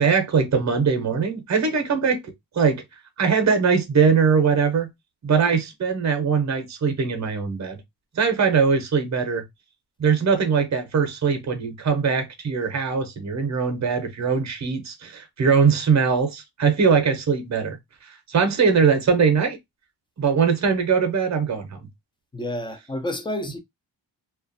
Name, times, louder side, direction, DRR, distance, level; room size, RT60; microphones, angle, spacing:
voice 1, 0.0-2.8 3.2-4.9 5.2-7.8 8.2-9.4 10.0-17.8 18.0-19.6 20.2-21.8, right 5 dB, 40° right, 0.7 m, -21 dB
voice 2, 22.3-23.6, left 1 dB, 10° left, 0.3 m, -29 dB
2.3 x 2.2 x 2.5 m
wide cardioid pair, 135°, 45 cm